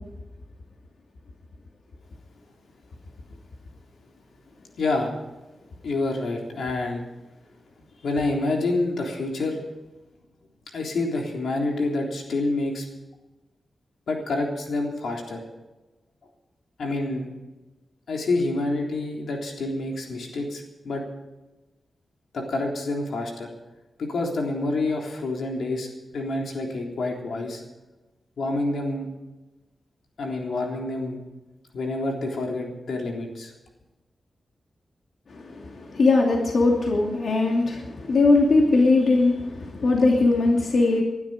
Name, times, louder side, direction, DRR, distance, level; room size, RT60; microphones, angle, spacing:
voice 1, 4.8-5.1 5.8-7.1 8.0-9.6 10.7-12.9 14.1-15.4 16.8-17.3 18.1-21.0 22.3-23.5 24.0-27.6 28.4-29.1 30.2-31.2 31.7-33.5, left 2 dB, 90° left, 1 dB, 3.6 m, -27 dB
voice 2, 35.3-41.0, left 3 dB, 60° left, 0 dB, 2.7 m, -20 dB
20.5 x 12.0 x 5.0 m, 1.1 s
wide cardioid pair, 155°, 0 cm